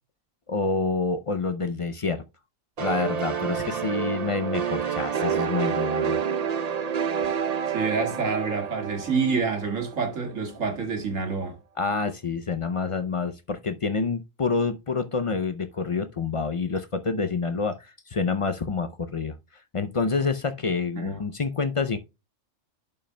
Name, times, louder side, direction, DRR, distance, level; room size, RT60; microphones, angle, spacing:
voice 1, 0.5-2.2 2.8-6.2 11.8-19.4 19.7-22.0, left 4 dB, 55° left, 0.3 m, -27 dB
sound 1, 2.8-10.3, right 7 dB, 45° right, 0.5 m, -28 dB
voice 2, 7.7-11.6 21.0-21.1, right 5 dB, 80° right, 2.3 m, -27 dB
11.0 x 5.3 x 2.2 m
omnidirectional pair, 1.3 m